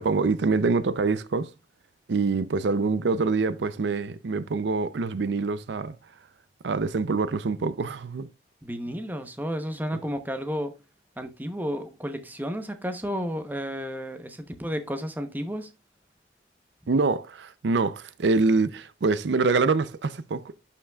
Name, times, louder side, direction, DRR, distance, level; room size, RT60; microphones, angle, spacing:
voice 1, 0.0-1.5 2.1-5.9 6.6-8.3 16.9-20.5, right 4 dB, 80° right, 0.5 m, -25 dB
voice 2, 8.6-10.7 11.2-15.7, equal, 10° right, 0.8 m, -32 dB
11.5 x 5.7 x 2.3 m
head